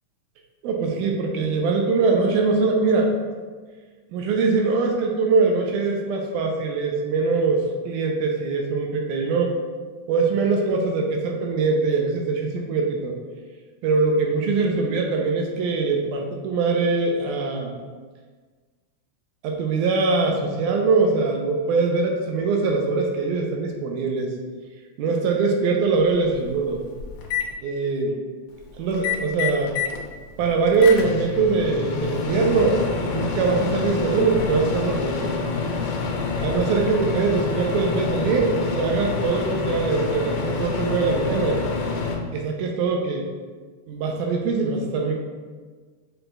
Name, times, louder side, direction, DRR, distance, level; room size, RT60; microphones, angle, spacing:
voice 1, 0.6-3.2 4.1-9.5 10.1-13.2 13.8-17.7 19.4-24.3 25.0-26.8 27.6-28.2 28.8-29.7 30.4-35.2 36.4-41.6 42.3-43.2 43.9-45.2, right 4 dB, 80° right, 1 dB, 2.0 m, -22 dB
Microwave oven, 25.9-26.0 26.5-27.5 28.9-30.0 30.4-42.2, left 4 dB, 85° left, 1.6 m, -27 dB
5.9 x 3.9 x 2.3 m, 1.4 s
omnidirectional pair, 3.8 m